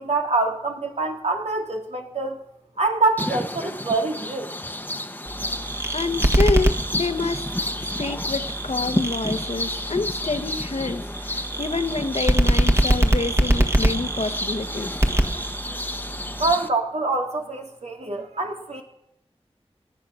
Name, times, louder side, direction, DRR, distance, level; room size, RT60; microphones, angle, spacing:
voice 1, 0.0-2.4 2.8-4.5 16.4-18.8, right 3 dB, 85° right, 2 dB, 2.4 m, -25 dB
sound 1, 3.2-16.7, left 1 dB, 15° left, 0.9 m, -31 dB
sound 2, 5.3-16.5, right 1 dB, 25° right, 1.5 m, -24 dB
voice 2, 5.9-7.5 7.8-14.9, left 3 dB, 70° left, 10 dB, 1.1 m, -27 dB
18.0 x 11.0 x 6.3 m, 0.76 s
wide cardioid pair, 70°, 11 cm